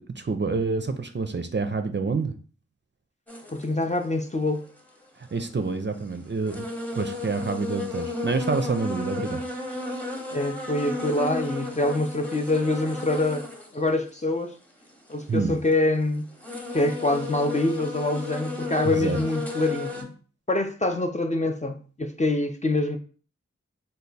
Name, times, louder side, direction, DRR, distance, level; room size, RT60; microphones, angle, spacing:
voice 1, 0.2-2.3 5.2-6.7 6.9-9.4 15.3-15.6 18.8-19.2, right 4 dB, 40° right, 0.4 m, -27 dB
sound 1, 3.3-3.7 5.3-5.4 6.0-6.1 6.5-13.8 14.1-14.2 14.8-15.7 16.3-20.0, left 2 dB, 5° left, 0.8 m, -33 dB
voice 2, 3.5-4.7 10.3-13.5 13.7-14.6 15.1-16.3 16.7-20.1 20.5-23.0, left 2 dB, 25° left, 0.4 m, -25 dB
3.3 x 2.2 x 4.0 m
wide cardioid pair, 50°, 29 cm